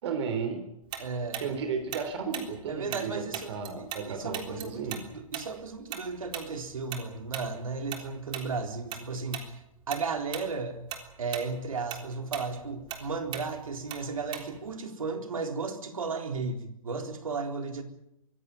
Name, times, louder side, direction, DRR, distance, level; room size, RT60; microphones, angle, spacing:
voice 1, 0.0-0.6 1.4-5.0 13.0-13.1, right 5 dB, 50° right, 8 dB, 3.8 m, -34 dB
Tick-tock, 0.9-4.1 4.3-9.0 9.3-9.5 9.9-10.5 10.8-14.7, right 10 dB, 25° right, 3.6 m, -39 dB
voice 2, 1.0-1.5 2.7-9.4 9.9-10.9 11.2-17.8, right 4 dB, 70° right, 5 dB, 3.9 m, -34 dB
24.5 x 16.0 x 9.1 m, 0.84 s
figure-of-eight pair, 120°, 18 cm